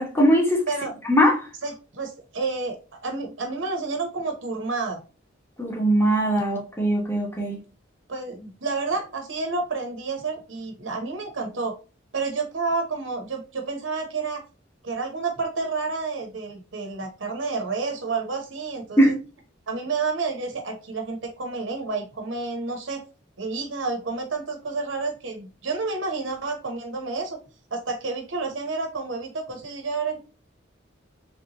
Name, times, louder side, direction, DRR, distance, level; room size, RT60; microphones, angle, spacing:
voice 1, 0.0-0.7 1.1-1.4 5.6-7.6 19.0-19.1, equal, 10° left, 1.0 m, -20 dB
voice 2, 0.7-1.0 1.6-5.0 8.1-11.7 12.1-14.4 14.8-19.1 19.7-23.0 23.4-27.4 27.7-30.2, right 4 dB, 80° right, 0.9 m, -30 dB
3.3 x 2.8 x 2.8 m
head